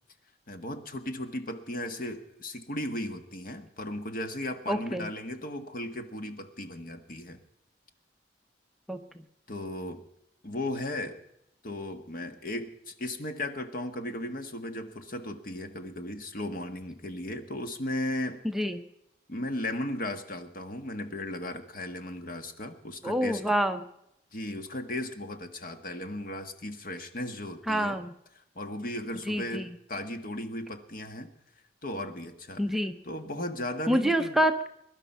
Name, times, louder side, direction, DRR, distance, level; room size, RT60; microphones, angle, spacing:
voice 1, 0.5-7.4 9.5-10.0 10.4-11.2 11.6-18.4 19.3-23.4 24.3-28.0 28.5-31.3 31.8-32.6 33.0-34.4, left 1 dB, 55° left, 7 dB, 1.5 m, -36 dB
voice 2, 4.7-5.1 8.9-9.0 18.5-18.8 23.0-23.8 27.7-28.1 29.3-29.7 32.6-32.9 33.9-34.7, equal, ahead, 6 dB, 0.7 m, -27 dB
22.5 x 11.5 x 5.6 m, 0.81 s
head